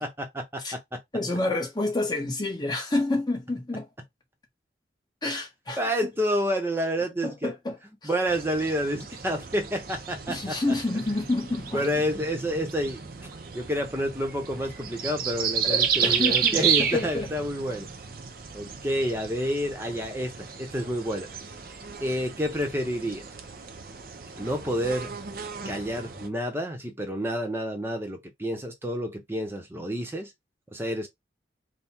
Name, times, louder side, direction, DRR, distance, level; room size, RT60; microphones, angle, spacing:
voice 1, 0.0-1.0 5.8-7.5 8.0-10.8 11.7-13.0 13.5-17.9 18.5-21.3 22.0-23.2 24.4-25.1 25.6-30.3 30.7-31.1, equal, 15° right, 0.9 m, -29 dB
voice 2, 1.1-3.9 5.2-5.8 7.2-7.8 10.3-11.8 15.7-17.3, left 2 dB, 25° left, 1.1 m, -28 dB
sound 1, 8.3-26.3, right 7 dB, 50° right, 0.6 m, -32 dB
3.6 x 2.3 x 4.3 m
head